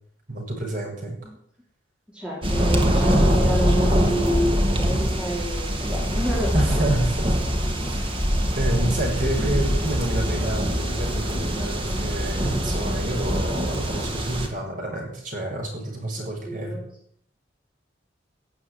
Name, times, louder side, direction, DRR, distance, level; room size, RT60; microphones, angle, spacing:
voice 1, 0.3-1.3 6.5-7.4 7.8-8.0 8.5-16.8, right 1 dB, 45° right, 0 dB, 6.9 m, -29 dB
voice 2, 2.1-6.5 16.2-17.0, equal, 5° right, -4 dB, 4.1 m, -28 dB
sound 1, 2.4-14.5, equal, 30° right, 2.5 m, -23 dB
17.0 x 8.5 x 9.8 m, 0.67 s
head